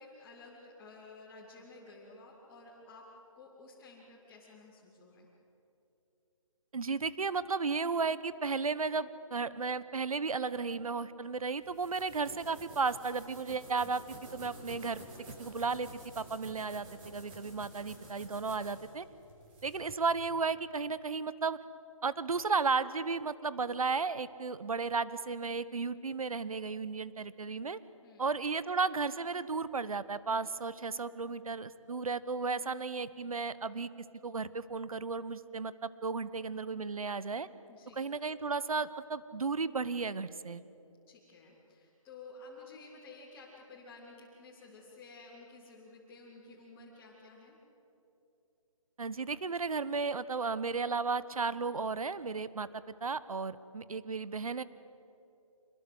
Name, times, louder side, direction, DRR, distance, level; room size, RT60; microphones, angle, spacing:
voice 1, 0.0-3.0 3.3-5.3 17.5-17.9 28.0-28.3 37.7-38.0 41.1-47.5, left 3 dB, 10° left, -8 dB, 3.4 m, -53 dB
voice 2, 6.7-15.9 16.1-19.1 19.6-21.6 22.0-27.8 28.2-33.9 34.2-37.5 37.9-40.6 49.0-54.6, right 4 dB, 80° right, 16 dB, 1.1 m, -34 dB
sound 1, 11.6-19.9, right 1 dB, 20° right, 5.1 m, -51 dB
26.5 x 21.0 x 8.0 m, 2.8 s
hypercardioid pair, 165°, 18 cm